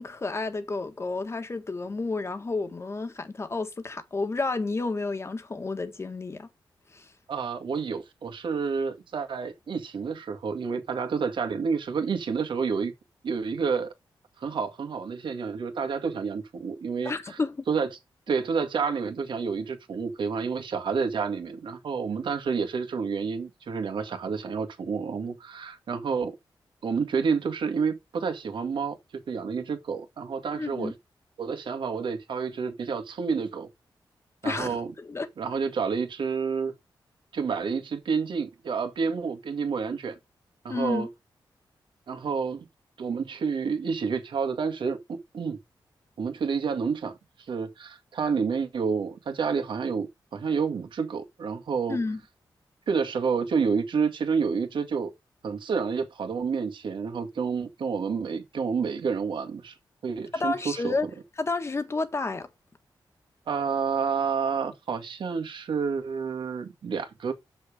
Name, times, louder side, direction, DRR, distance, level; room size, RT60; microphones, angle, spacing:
voice 1, 0.0-6.5 6.9-7.1 17.0-17.6 30.5-30.9 34.4-35.3 40.7-41.1 51.9-52.2 60.3-61.1 61.4-62.5, left 3 dB, 35° left, 1.6 m, -30 dB
voice 2, 7.3-12.9 13.2-13.9 14.4-17.4 17.7-17.9 18.3-26.4 26.8-29.0 29.3-30.9 31.4-33.7 34.4-34.9 35.4-36.7 37.3-40.2 40.6-41.1 42.1-42.6 43.0-45.6 46.2-47.2 47.5-52.0 52.9-55.1 55.4-59.8 60.0-61.0 63.5-67.3, right 5 dB, 75° right, 1.9 m, -29 dB
7.2 x 6.4 x 5.0 m
wide cardioid pair, 115°, 8 cm